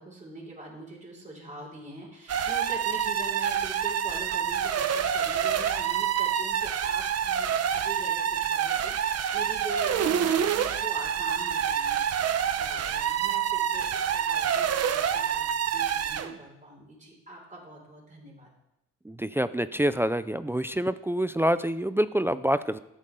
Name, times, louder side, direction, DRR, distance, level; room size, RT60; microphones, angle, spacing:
voice 1, 0.0-15.4 15.7-18.5, right 2 dB, 25° right, -2 dB, 5.5 m, -43 dB
sound 1, 2.3-16.3, right 8 dB, 55° right, 0.9 m, -27 dB
voice 2, 19.0-22.8, equal, 10° right, 13 dB, 0.4 m, -26 dB
14.0 x 9.7 x 3.8 m, 0.86 s
cardioid pair, 90°, 30 cm